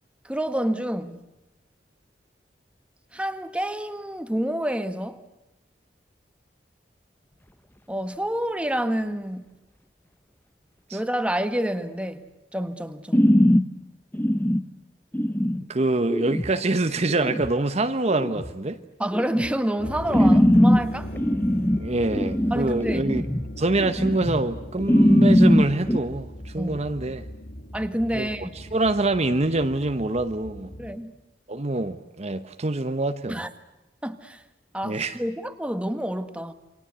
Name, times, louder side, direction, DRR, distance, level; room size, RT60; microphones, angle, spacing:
voice 1, 0.2-1.3 3.1-5.2 7.9-9.4 10.9-12.2 12.5-13.4 19.0-21.1 22.5-23.1 26.6-26.8 27.7-28.5 30.8-31.1 33.3-33.5 34.0-34.4 34.7-36.5, right 1 dB, 5° right, 1.6 m, -28 dB
sound 1, 13.1-13.6 14.1-14.6 15.1-15.6 16.1-16.5 17.1-17.5 18.1-18.5 19.1-19.5 20.1-20.8 21.1-23.4 23.8-24.5 24.8-26.0, equal, 10° left, 1.0 m, -20 dB
voice 2, 15.7-18.8 20.2-20.4 21.8-23.2 23.6-27.2 28.1-28.3 28.5-30.7 31.5-33.5 34.8-35.2, right 2 dB, 40° right, 1.0 m, -25 dB
sound 2, 19.8-31.0, equal, 70° left, 3.0 m, -39 dB
28.5 x 24.0 x 8.1 m
head